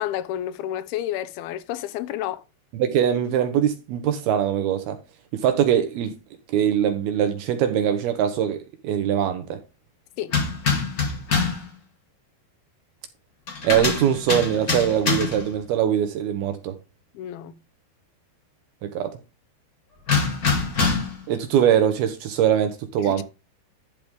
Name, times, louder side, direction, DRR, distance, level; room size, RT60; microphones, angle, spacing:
voice 1, 0.0-2.4 10.2-10.3 17.1-17.6 23.0-23.2, left 12 dB, 75° left, 2.3 m, -30 dB
voice 2, 2.7-5.0 5.3-6.2 6.5-9.6 13.6-16.8 18.8-19.2 21.3-23.2, right 9 dB, 75° right, 2.5 m, -22 dB
sound 1, 10.3-11.7 13.5-15.5 20.1-21.2, left 4 dB, 50° left, 1.0 m, -24 dB
12.0 x 4.8 x 5.1 m
omnidirectional pair, 5.2 m